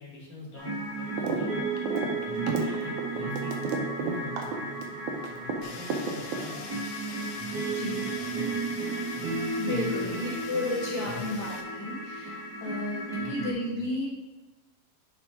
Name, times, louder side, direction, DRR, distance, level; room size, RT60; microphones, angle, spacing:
voice 1, 0.0-1.6 2.1-3.5 3.9-4.6 5.3-6.8 7.4-8.7 9.1-9.3 9.7-10.3 11.0-11.3 13.2-13.5, left 4 dB, 30° left, -7 dB, 2.4 m, -43 dB
sound 1, 0.5-13.5, right 3 dB, 55° right, 1.1 m, -34 dB
sound 2, 1.2-1.5 1.7-5.6 5.9-6.8, right 5 dB, 70° right, 2.1 m, -31 dB
Fire, 5.6-11.6, left 5 dB, 80° left, 2.7 m, -44 dB
voice 2, 7.5-8.0 9.6-14.0, left 2 dB, 50° left, -8 dB, 2.0 m, -33 dB
10.0 x 4.7 x 3.5 m, 1.2 s
omnidirectional pair, 4.1 m